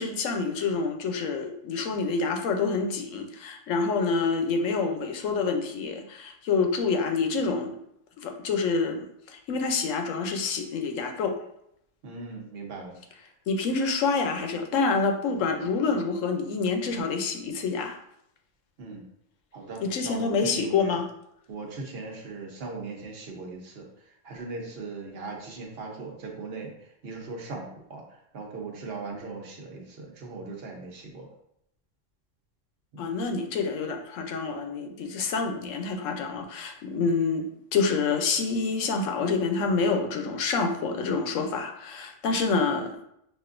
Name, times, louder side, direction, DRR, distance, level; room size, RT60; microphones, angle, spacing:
voice 1, 0.0-7.8 8.2-11.4 13.5-18.0 19.8-21.0 33.0-37.5 37.7-43.0, left 4 dB, 85° left, 4 dB, 1.0 m, -27 dB
voice 2, 12.0-13.0 18.8-19.1 19.5-21.0 21.5-23.8 24.2-31.3 32.9-33.1, right 3 dB, 55° right, 0 dB, 1.1 m, -39 dB
6.1 x 2.6 x 2.5 m, 0.76 s
omnidirectional pair, 1.3 m